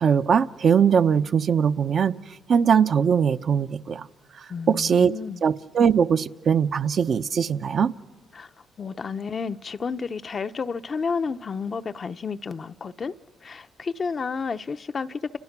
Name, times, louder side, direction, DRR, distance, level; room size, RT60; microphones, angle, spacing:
voice 1, 0.0-2.1 2.5-4.1 4.4-5.1 5.4-7.9, right 7 dB, 55° right, 0.8 m, -21 dB
voice 2, 4.5-5.4 8.3-8.5 8.8-13.1 13.4-15.2, left 5 dB, 40° left, 0.8 m, -31 dB
30.0 x 28.5 x 6.0 m
cardioid pair, 90°, 0 cm